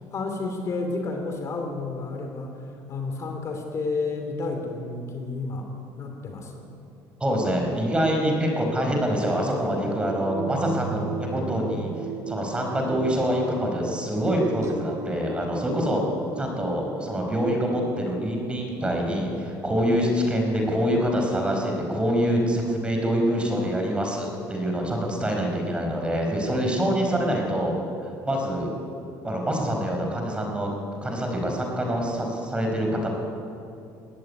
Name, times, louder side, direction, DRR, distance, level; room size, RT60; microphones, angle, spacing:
voice 1, 0.1-2.6 2.9-5.7 6.0-6.7, left 3 dB, 40° left, 4 dB, 3.1 m, -31 dB
voice 2, 7.2-16.0 16.4-27.7 28.0-28.8 29.2-30.7 31.0-33.1, equal, 15° right, 1 dB, 4.7 m, -25 dB
sound 1, 10.2-20.1, right 4 dB, 40° right, 2.6 m, -37 dB
21.5 x 17.0 x 9.6 m, 2.7 s
cardioid pair, 135°, 8 cm